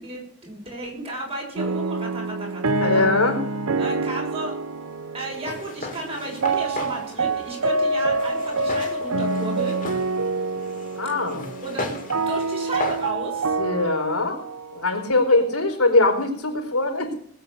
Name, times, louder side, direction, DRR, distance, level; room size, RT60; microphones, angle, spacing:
voice 1, 0.0-3.1 3.8-4.6 5.1-9.8 11.6-13.6, right 1 dB, 25° right, -1 dB, 6.2 m, -33 dB
sound 1, 1.6-15.5, right 3 dB, 75° right, 0.8 m, -27 dB
voice 2, 2.8-3.4 11.0-11.5 13.6-14.4 14.7-17.1, left 2 dB, 80° left, 4 dB, 4.3 m, -21 dB
Walk footsteps, 5.3-13.1, left 2 dB, 35° left, 3.2 m, -36 dB
19.5 x 8.7 x 7.0 m, 0.66 s
head